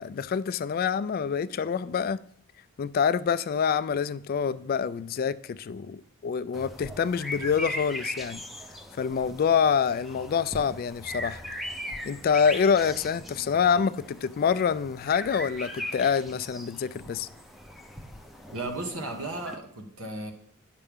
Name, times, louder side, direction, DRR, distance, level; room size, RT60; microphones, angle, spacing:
voice 1, 0.0-2.2 2.8-8.4 9.0-11.4 12.1-17.3, left 6 dB, 45° left, 0.3 m, -26 dB
sound 1, 6.5-19.6, left 1 dB, ahead, 0.6 m, -39 dB
voice 2, 18.5-20.3, right 2 dB, 80° right, 1.5 m, -35 dB
9.9 x 6.7 x 3.6 m
head